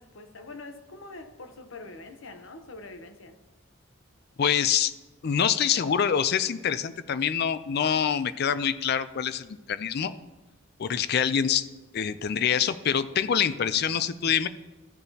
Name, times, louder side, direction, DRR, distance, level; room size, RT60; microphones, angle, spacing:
voice 1, 0.0-3.3, left 2 dB, 70° left, 7 dB, 0.9 m, -44 dB
voice 2, 4.4-4.9 5.2-10.1 10.8-11.7 11.9-14.5, left 8 dB, 50° left, 14 dB, 0.4 m, -25 dB
14.0 x 6.9 x 2.8 m, 1.1 s
head